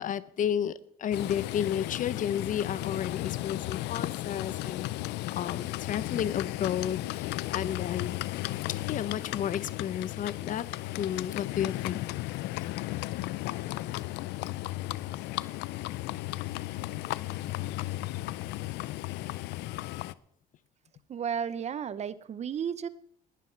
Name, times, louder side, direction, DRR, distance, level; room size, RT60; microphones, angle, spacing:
voice 1, 0.0-8.2 8.7-10.7 11.0-12.0, left 9 dB, 50° left, 17 dB, 0.7 m, -32 dB
Livestock farm animals working animals, 1.1-20.1, left 17 dB, 85° left, 0.5 m, -35 dB
voice 2, 21.1-22.9, right 8 dB, 40° right, 17 dB, 0.7 m, -33 dB
19.5 x 11.0 x 4.5 m, 0.73 s
cardioid pair, 110°, 17 cm